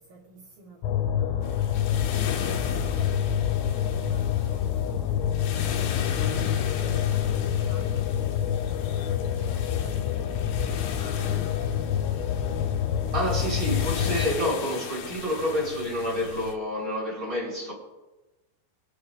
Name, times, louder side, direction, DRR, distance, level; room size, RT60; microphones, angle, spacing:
voice 1, 0.1-0.8 1.0-1.7 2.4-3.3 3.6-6.3 6.9-8.0 9.2-11.5, right 2 dB, 70° right, -4 dB, 1.8 m, -49 dB
sound 1, 0.8-14.4, left 9 dB, 90° left, 3.7 m, -27 dB
sound 2, 1.4-16.5, left 7 dB, 75° left, 3.2 m, -38 dB
voice 2, 13.1-17.7, equal, 15° right, -4 dB, 5.0 m, -28 dB
25.5 x 9.1 x 2.8 m, 1.1 s
omnidirectional pair, 6.0 m